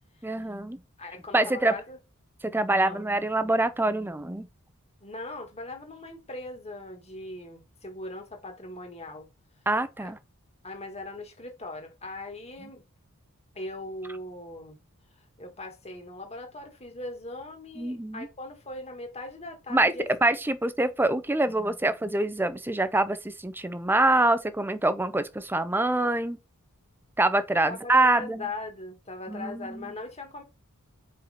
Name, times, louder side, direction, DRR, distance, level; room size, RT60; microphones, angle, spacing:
voice 1, 0.2-0.8 1.3-1.7 2.4-4.5 9.7-10.2 17.8-18.3 19.7-19.9 20.2-26.4 27.2-28.4 29.3-29.9, right 2 dB, 10° right, 0.6 m, -25 dB
voice 2, 1.0-2.0 2.8-3.0 5.0-9.3 10.0-10.1 10.6-12.8 13.6-14.8 15.4-20.1 27.6-30.4, left 2 dB, 30° left, 1.8 m, -40 dB
4.9 x 4.7 x 4.9 m
head